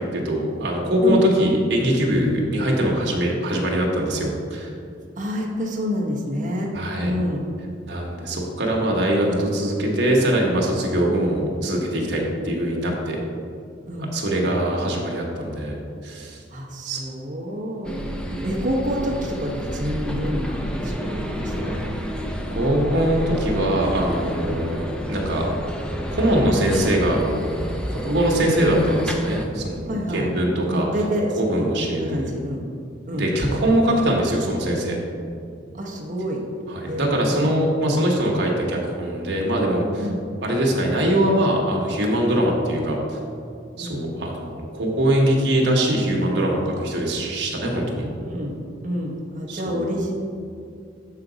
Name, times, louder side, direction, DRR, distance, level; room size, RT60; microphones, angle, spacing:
voice 1, 0.1-4.7 6.7-7.1 7.9-13.2 14.1-16.4 16.9-17.0 22.5-25.5 26.1-27.6 27.9-30.9 31.4-32.3 33.1-35.0 36.7-40.1 40.4-43.2 43.8-48.1 49.5-50.0, right 1 dB, 60° right, -1 dB, 1.2 m, -22 dB
voice 2, 5.2-7.5 9.2-9.4 13.9-14.1 16.5-18.0 18.4-21.8 24.3-24.6 29.9-30.3 30.7-31.7 31.9-32.6 33.1-33.3 35.7-36.4 36.9-37.5 40.0-40.2 43.8-44.0 48.1-48.5 48.8-50.1, equal, 40° right, -1 dB, 1.0 m, -28 dB
sound 1, 17.8-29.5, equal, 5° left, 0.4 m, -29 dB
7.5 x 3.9 x 4.9 m, 2.4 s
head